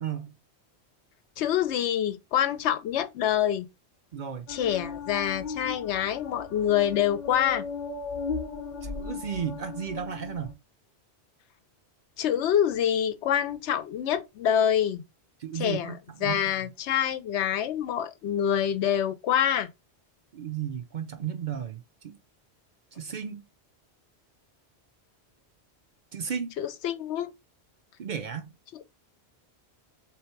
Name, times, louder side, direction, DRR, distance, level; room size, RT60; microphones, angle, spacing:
voice 1, 0.0-0.3 4.1-4.5 8.8-10.6 15.4-16.4 20.3-22.2 22.9-23.4 26.1-26.5 28.0-28.5, right 8 dB, 55° right, 0.6 m, -34 dB
voice 2, 1.4-3.7 4.5-7.6 12.2-15.0 15.5-15.9 16.2-19.7 26.6-27.3, left 10 dB, 85° left, 0.9 m, -26 dB
sound 1, 4.5-10.5, left 4 dB, 45° left, 0.8 m, -37 dB
3.6 x 3.0 x 4.5 m
omnidirectional pair, 1.1 m